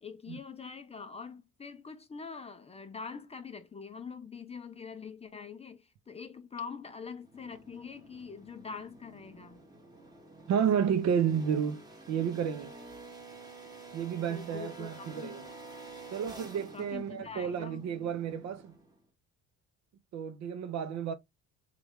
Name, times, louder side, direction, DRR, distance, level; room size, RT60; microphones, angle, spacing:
voice 1, 0.0-9.6 14.1-15.4 16.7-17.8, left 5 dB, 20° left, 0.5 m, -44 dB
sound 1, 7.2-19.0, right 3 dB, 10° right, 0.9 m, -50 dB
voice 2, 10.5-12.7 13.9-15.4 16.1-18.7 20.1-21.1, right 8 dB, 55° right, 0.6 m, -31 dB
3.2 x 2.4 x 3.4 m
cardioid pair, 115°, 32 cm